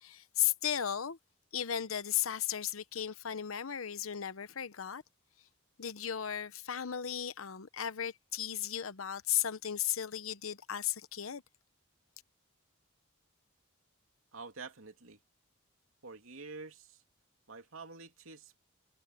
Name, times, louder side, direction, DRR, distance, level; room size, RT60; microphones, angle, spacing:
voice 1, 0.0-1.2 1.5-5.0 5.8-11.4, left 10 dB, 80° left, 0.9 m, -35 dB
voice 2, 14.3-15.2 16.0-17.0 17.5-18.6, right 4 dB, 75° right, 2.8 m, -48 dB
head